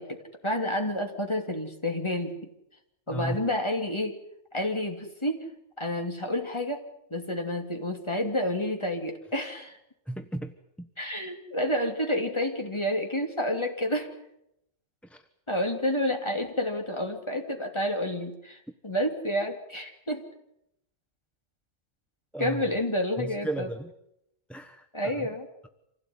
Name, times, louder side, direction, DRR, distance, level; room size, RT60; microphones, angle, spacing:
voice 1, 0.0-2.3 3.1-4.2 4.5-5.4 5.8-6.8 7.1-9.8 11.0-14.1 15.5-20.2 22.4-23.7 24.9-25.5, left 1 dB, 20° left, 3 dB, 2.9 m, -29 dB
voice 2, 3.1-3.5 10.1-10.5 10.8-10.9 15.0-15.2 22.3-22.6 23.2-23.9 24.5-25.3, right 2 dB, ahead, 7 dB, 1.0 m, -35 dB
27.0 x 16.5 x 9.6 m, 0.81 s
omnidirectional pair, 1.3 m